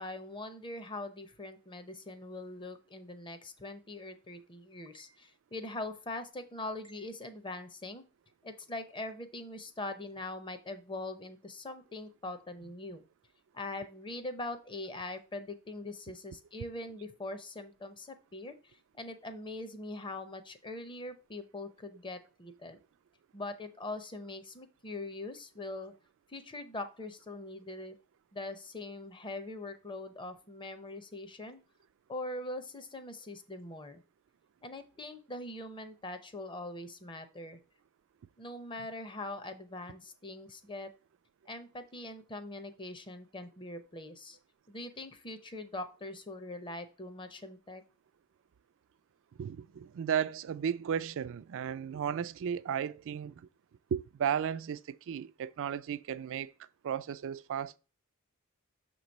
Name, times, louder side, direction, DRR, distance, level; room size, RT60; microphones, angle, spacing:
voice 1, 0.0-8.0 8.4-13.0 13.5-22.8 23.3-25.9 26.3-28.0 28.3-31.6 32.1-34.0 34.6-37.6 38.4-40.9 41.5-44.4 44.7-47.8, left 2 dB, 25° left, 0.7 m, -42 dB
voice 2, 49.4-53.5 53.9-56.5 56.8-57.8, right 8 dB, 60° right, 0.3 m, -34 dB
6.6 x 3.1 x 5.2 m
head